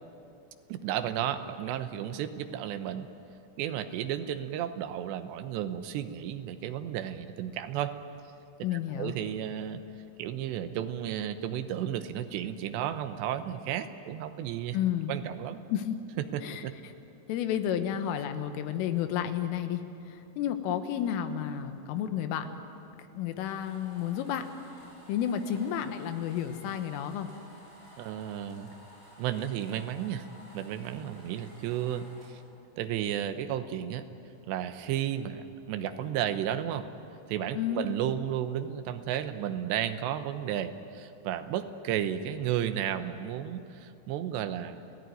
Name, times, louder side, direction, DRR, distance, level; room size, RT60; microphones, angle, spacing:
voice 1, 0.7-3.1 3.6-7.9 8.7-9.8 10.2-14.8 15.1-15.6 16.3-16.8 28.0-28.7 29.2-30.3 30.5-32.4 32.8-34.1 34.5-36.9 37.3-44.8, right 10 dB, 75° right, 9 dB, 2.9 m, -33 dB
voice 2, 8.6-9.2 14.7-15.1 15.7-16.0 16.4-16.6 17.3-22.6 23.0-24.5 25.1-27.3 37.5-37.9, left 9 dB, 90° left, 8 dB, 3.8 m, -31 dB
sound 1, 23.4-32.3, equal, 15° left, 8.2 m, -54 dB
29.5 x 17.0 x 9.3 m, 2.7 s
omnidirectional pair, 5.6 m